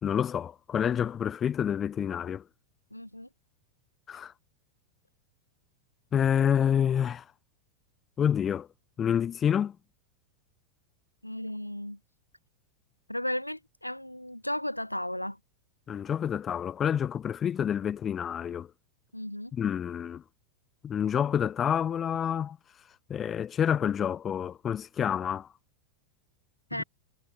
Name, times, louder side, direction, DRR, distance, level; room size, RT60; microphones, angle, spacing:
voice 1, 0.0-2.4 4.1-4.3 6.1-7.2 8.2-8.7 9.0-9.8 15.9-18.7 19.5-20.2 20.8-22.6 23.1-25.5, left 8 dB, 25° left, 0.8 m, -28 dB
voice 2, 2.9-3.3 11.2-12.0 13.1-15.4 19.1-19.5 26.7-26.8, left 1 dB, 90° left, 1.0 m, -34 dB
figure-of-eight pair, 90°, 0 cm